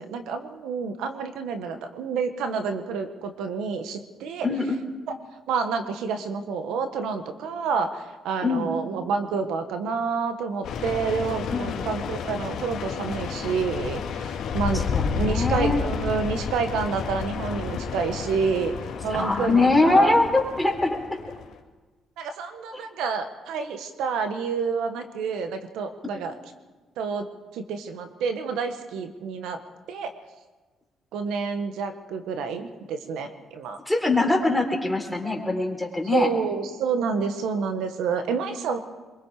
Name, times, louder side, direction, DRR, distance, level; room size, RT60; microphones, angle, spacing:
voice 1, 0.0-4.5 5.5-14.8 15.1-18.7 19.0-20.2 22.2-26.4 27.0-27.2 27.5-29.6 29.9-30.1 31.1-33.8 36.1-38.8, right 5 dB, 90° right, 8 dB, 1.5 m, -28 dB
voice 2, 4.4-4.8 8.4-8.7 11.5-11.9 14.9-15.8 19.1-21.0 33.9-36.3, left 2 dB, 5° left, 2 dB, 4.0 m, -22 dB
sound 1, 10.6-21.5, left 6 dB, 80° left, 2.7 m, -31 dB
23.5 x 22.5 x 5.0 m, 1.3 s
cardioid pair, 90°, 0 cm